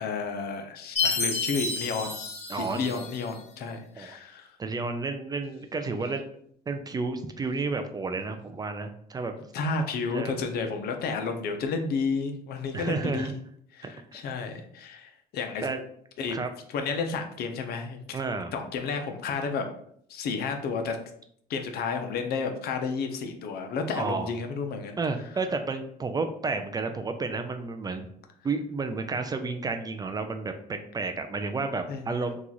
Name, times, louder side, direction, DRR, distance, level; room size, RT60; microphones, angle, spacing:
voice 1, 0.0-2.2 2.6-4.5 9.5-13.3 13.7-15.7 16.2-16.4 16.7-18.2 18.5-19.7 20.1-21.0 21.5-25.0 31.9-32.0, left 4 dB, 70° left, 5 dB, 0.6 m, -31 dB
Chime, 1.0-3.4, left 4 dB, 40° left, 0.8 m, -30 dB
voice 2, 2.5-3.1 4.0-4.1 4.6-6.3 6.7-9.3 10.1-10.3 12.7-13.3 15.6-15.8 16.3-16.5 18.1-18.5 24.0-24.3 25.0-28.1 28.4-32.4, right 3 dB, 25° right, 7 dB, 0.3 m, -31 dB
3.0 x 2.4 x 3.9 m, 0.66 s
cardioid pair, 110°, 17 cm